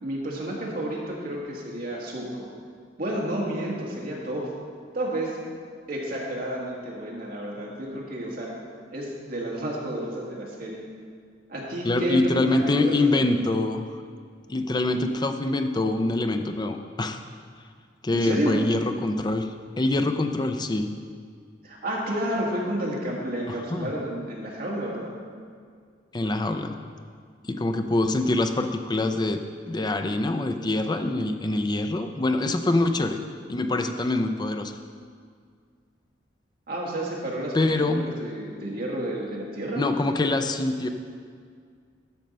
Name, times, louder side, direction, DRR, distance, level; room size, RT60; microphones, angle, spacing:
voice 1, 0.0-2.5 3.0-4.5 4.9-5.4 5.9-8.5 8.9-10.8 11.5-13.2 18.1-18.6 21.6-25.1 36.7-37.7 38.2-39.9, right 1 dB, 55° right, -3 dB, 1.9 m, -30 dB
voice 2, 11.8-13.9 14.5-17.2 18.0-19.5 19.8-20.9 23.5-23.9 26.1-26.9 27.4-33.2 33.5-34.8 37.5-38.1 39.8-40.9, left 2 dB, 25° left, 7 dB, 0.5 m, -25 dB
12.5 x 4.5 x 5.4 m, 2.1 s
head